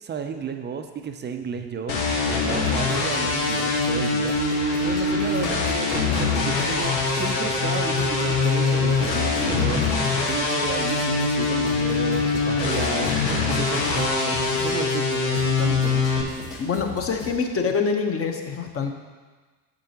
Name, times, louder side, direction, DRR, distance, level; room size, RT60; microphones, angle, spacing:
voice 1, 0.0-2.0 2.4-4.4 4.8-9.8 10.3-16.1, right 6 dB, 20° right, 6 dB, 0.6 m, -32 dB
sound 1, 1.9-16.2, left 4 dB, 80° left, 1.4 m, -23 dB
sound 2, 2.7-17.4, left 4 dB, 60° left, 1.9 m, -39 dB
voice 2, 16.6-18.9, left 5 dB, 25° left, 4 dB, 1.0 m, -25 dB
9.0 x 7.6 x 2.9 m, 1.3 s
hypercardioid pair, 75°, 50 cm